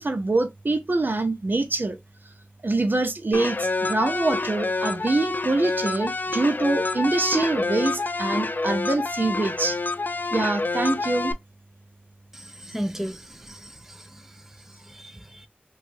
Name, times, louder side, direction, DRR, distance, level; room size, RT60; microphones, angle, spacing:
voice 1, 0.0-2.0 2.6-9.8 10.3-11.3, right 2 dB, 65° right, 0.6 m, -25 dB
sound 1, 3.3-11.3, left 3 dB, 55° left, 0.3 m, -28 dB
voice 2, 12.3-14.0 14.9-15.5, equal, 10° right, 0.4 m, -35 dB
3.0 x 2.3 x 3.0 m
wide cardioid pair, 40°, 4 cm